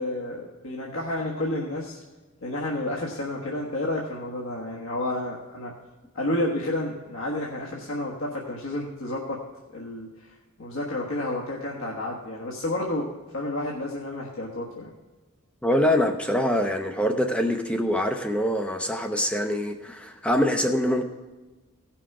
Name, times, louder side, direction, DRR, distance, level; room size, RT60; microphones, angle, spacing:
voice 1, 0.0-2.0 2.4-5.7 6.1-9.4 9.7-10.1 10.6-14.9, left 1 dB, 70° left, -3 dB, 1.4 m, -30 dB
voice 2, 15.6-21.0, equal, 5° left, 4 dB, 0.6 m, -24 dB
16.5 x 6.0 x 4.8 m, 1.3 s
head